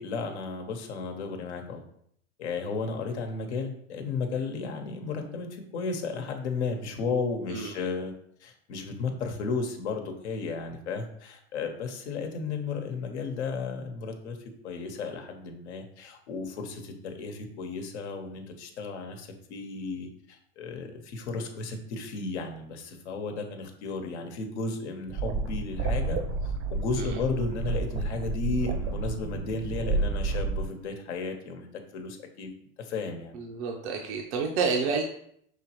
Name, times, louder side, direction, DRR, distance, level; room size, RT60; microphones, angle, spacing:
voice 1, 0.0-1.8 2.4-8.1 8.4-14.4 14.6-31.7 31.9-32.5 32.8-33.3, left 4 dB, 75° left, 4 dB, 1.0 m, -34 dB
sound 1, 25.1-30.7, right 3 dB, 40° right, 0.7 m, -30 dB
voice 2, 33.3-35.0, right 5 dB, 75° right, 1 dB, 0.7 m, -29 dB
5.5 x 3.1 x 2.9 m, 0.68 s
hypercardioid pair, 100°, 34 cm